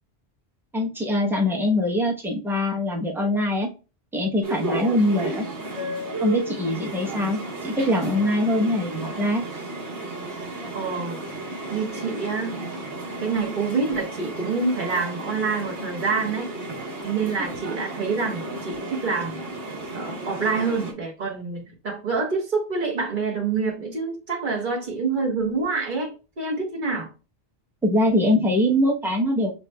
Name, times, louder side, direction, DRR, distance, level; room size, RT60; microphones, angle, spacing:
voice 1, 0.7-3.7 4.1-5.4 6.2-9.4 27.8-29.5, left 1 dB, ahead, 0.7 m, -23 dB
sound 1, 4.4-20.9, right 2 dB, 80° right, 1.6 m, -33 dB
voice 2, 10.7-11.2 11.7-12.6 13.2-16.6 17.0-19.4 19.9-27.1, right 4 dB, 50° right, 1.3 m, -27 dB
6.7 x 2.8 x 2.2 m
omnidirectional pair, 1.1 m